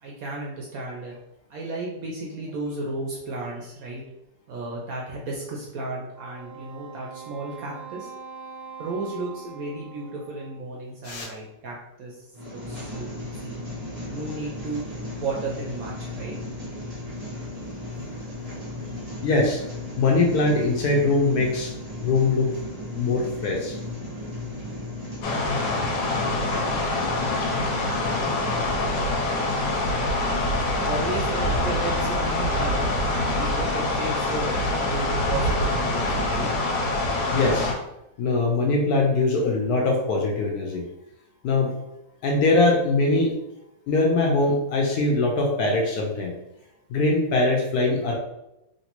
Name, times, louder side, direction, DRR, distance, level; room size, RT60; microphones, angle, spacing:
voice 1, 0.0-1.2 1.5-4.0 4.5-8.1 8.8-13.6 14.1-16.4 30.8-34.5 34.8-36.5, right 2 dB, 70° right, -2 dB, 0.9 m, -34 dB
Wind instrument woodwind instrument, 6.1-10.7, right 6 dB, 40° left, 0.7 m, -42 dB
sound 1, 12.3-28.9, left 1 dB, 35° right, 0.5 m, -35 dB
voice 2, 19.2-19.6 20.0-21.7 22.0-22.5 22.9-23.8 37.3-37.7 38.2-40.8 41.4-41.7 42.2-43.4 43.9-46.3 46.9-48.2, left 3 dB, 70° left, 0 dB, 1.0 m, -22 dB
sound 2, 25.2-37.7, left 2 dB, 85° left, 1.3 m, -25 dB
3.2 x 2.6 x 2.9 m, 0.88 s
omnidirectional pair, 1.9 m